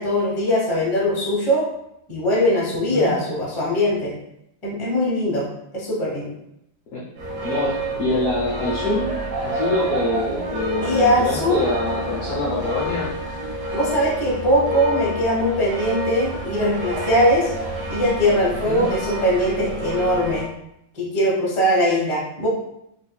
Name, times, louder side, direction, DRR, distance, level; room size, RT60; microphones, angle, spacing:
voice 1, 0.0-1.7 2.1-4.1 4.6-5.5 5.7-6.3 10.8-11.7 13.7-17.5 17.9-20.5 20.9-22.5, equal, 25° left, -5 dB, 0.6 m, -21 dB
sound 1, 7.2-20.4, right 1 dB, 60° right, 0.9 m, -28 dB
voice 2, 7.4-13.1 18.5-18.9, left 2 dB, 75° left, -5 dB, 0.8 m, -25 dB
4.9 x 2.5 x 2.2 m, 0.79 s
omnidirectional pair, 2.3 m